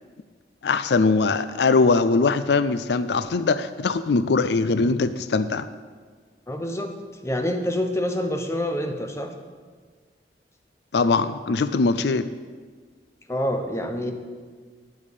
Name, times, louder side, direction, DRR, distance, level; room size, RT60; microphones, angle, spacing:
voice 1, 0.6-5.7 10.9-12.3, left 4 dB, 75° left, 13 dB, 0.4 m, -21 dB
voice 2, 6.5-6.9 7.2-9.3 13.3-14.1, left 1 dB, 15° left, 5 dB, 1.0 m, -26 dB
9.2 x 8.6 x 8.4 m, 1.5 s
head